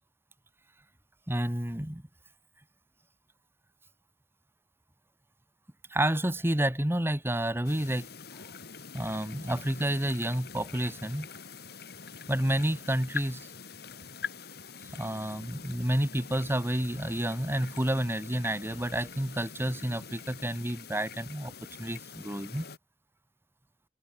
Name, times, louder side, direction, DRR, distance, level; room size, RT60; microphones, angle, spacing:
voice 1, 1.3-2.0 5.9-8.1 8.9-11.3 12.3-13.5 14.9-21.5 21.8-22.6, right 1 dB, 15° right, 1.6 m, -30 dB
sound 1, 7.6-22.8, left 5 dB, 65° left, 3.2 m, -44 dB
open air
head